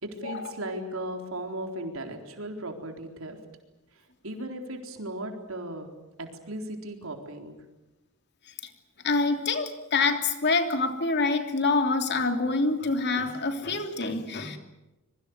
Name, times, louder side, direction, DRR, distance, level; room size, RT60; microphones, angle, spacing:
voice 1, 0.0-3.4 4.2-5.9 6.2-7.5, right 1 dB, 75° right, 4 dB, 4.0 m, -36 dB
voice 2, 9.0-14.6, left 3 dB, 55° left, 6 dB, 3.1 m, -26 dB
26.5 x 23.0 x 8.0 m, 1.0 s
head